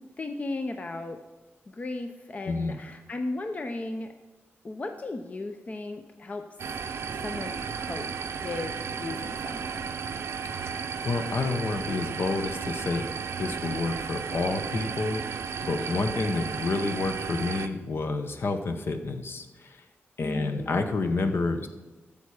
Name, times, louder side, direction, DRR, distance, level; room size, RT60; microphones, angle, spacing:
voice 1, 0.2-1.2 1.7-4.1 4.6-6.4 7.2-8.1 8.4-9.9 15.8-16.3 20.2-21.5, left 2 dB, 30° left, 6 dB, 0.6 m, -36 dB
sound 1, 6.6-17.7, right 6 dB, 75° right, 0.6 m, -34 dB
voice 2, 10.5-13.1 13.4-15.2 15.6-19.8 20.2-21.7, left 3 dB, 55° left, 7 dB, 0.9 m, -29 dB
13.0 x 7.1 x 4.8 m, 1.2 s
wide cardioid pair, 135°, 5 cm